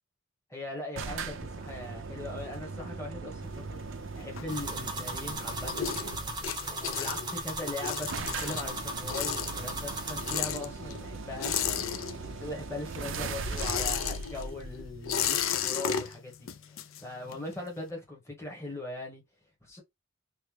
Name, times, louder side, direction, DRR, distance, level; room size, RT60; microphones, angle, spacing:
voice 1, 0.5-3.8 4.1-6.4 6.9-11.5 11.9-19.2 19.6-19.8, left 2 dB, 10° left, 1.1 m, -40 dB
sound 1, 1.0-6.5 7.5-7.6 7.7-7.8 8.1-15.6, right 4 dB, 60° right, 0.5 m, -39 dB
sound 2, 3.4-5.0 5.4-12.6 12.8-17.5, left 8 dB, 65° left, 0.4 m, -34 dB
sound 3, 4.5-10.4, right 2 dB, 20° right, 0.6 m, -37 dB
3.1 x 2.2 x 3.2 m
head